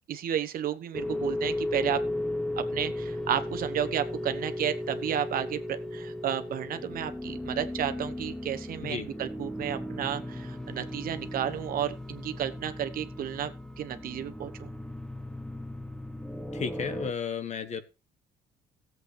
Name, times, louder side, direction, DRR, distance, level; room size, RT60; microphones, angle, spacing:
voice 1, 0.1-2.0 2.6-14.7, right 10 dB, 60° right, 9 dB, 1.1 m, -32 dB
sound 1, 0.9-17.1, left 1 dB, 5° left, 1.0 m, -36 dB
voice 2, 16.5-17.8, left 6 dB, 40° left, 11 dB, 1.4 m, -33 dB
17.5 x 7.9 x 3.3 m, 0.29 s
cardioid pair, 110°, 17 cm